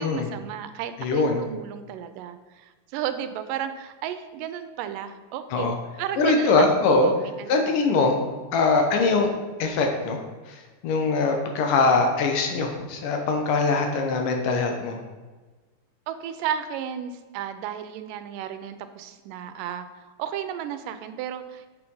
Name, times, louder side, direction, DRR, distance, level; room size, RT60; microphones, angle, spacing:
voice 1, 0.0-6.8 7.0-7.8 9.1-9.3 16.1-21.7, right 9 dB, 85° right, 10 dB, 2.2 m, -33 dB
voice 2, 1.0-1.4 5.5-5.8 6.2-7.1 7.5-8.2 8.5-9.3 9.6-10.2 10.5-15.0, left 3 dB, 75° left, 3 dB, 2.7 m, -22 dB
8.4 x 5.7 x 5.5 m, 1.3 s
omnidirectional pair, 3.8 m